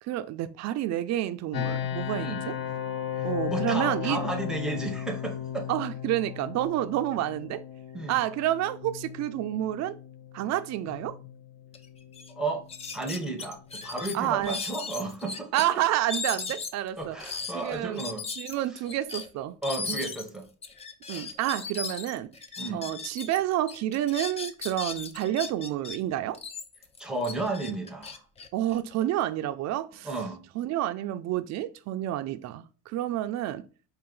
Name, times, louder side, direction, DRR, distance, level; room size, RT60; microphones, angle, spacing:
voice 1, 0.0-2.6 3.2-4.2 5.7-7.6 8.1-10.0 10.3-11.2 14.1-14.6 15.5-18.1 18.4-19.6 21.1-22.3 22.7-26.4 28.5-30.2 30.5-33.7, right 13 dB, 50° right, 0.5 m, -29 dB
sound 1, 1.5-14.4, left 10 dB, 85° left, 0.9 m, -36 dB
voice 2, 3.5-5.7 7.9-8.2 12.3-12.6 12.9-15.5 17.0-18.2 19.6-20.4 22.6-22.8 27.0-28.2 30.0-30.4, right 2 dB, ahead, 0.7 m, -33 dB
sound 2, 11.7-11.8 12.1-12.3 12.7-15.7 16.1-23.4 23.7-26.0 26.3-29.2, left 4 dB, 20° left, 0.3 m, -37 dB
4.8 x 2.5 x 3.8 m
cardioid pair, 150°, 34 cm